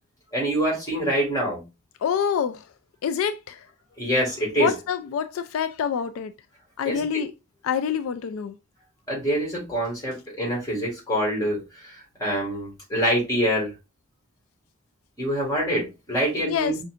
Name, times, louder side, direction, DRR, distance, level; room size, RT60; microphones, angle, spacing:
voice 1, 0.3-1.6 4.0-4.7 6.9-7.0 9.1-13.7 15.2-16.8, equal, 15° left, 1.9 m, -25 dB
voice 2, 2.0-2.7 3.0-3.7 4.6-6.3 6.8-7.3 7.6-8.6 16.4-16.7, left 7 dB, 75° left, 0.3 m, -26 dB
5.5 x 2.6 x 2.5 m
head